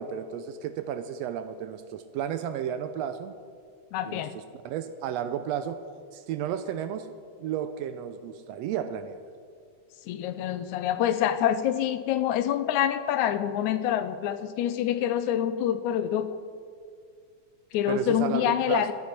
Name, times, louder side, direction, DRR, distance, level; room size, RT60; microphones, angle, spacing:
voice 1, 0.0-3.4 4.0-5.8 6.1-7.1 7.4-9.2 17.9-18.9, right 9 dB, 80° right, 10 dB, 1.5 m, -33 dB
voice 2, 3.9-4.3 10.1-16.4 17.7-18.9, left 10 dB, 85° left, 11 dB, 2.0 m, -26 dB
13.0 x 10.0 x 5.9 m, 2.1 s
omnidirectional pair, 3.4 m